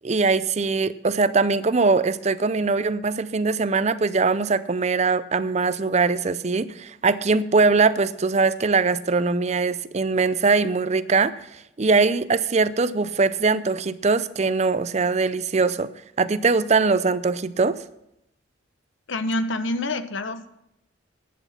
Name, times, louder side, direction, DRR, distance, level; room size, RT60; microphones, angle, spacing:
voice 1, 0.0-11.5 11.8-15.9 16.2-17.8, right 4 dB, 35° right, 15 dB, 0.5 m, -21 dB
voice 2, 19.1-20.5, left 2 dB, 80° left, 11 dB, 1.0 m, -27 dB
11.0 x 10.5 x 5.8 m, 0.81 s
head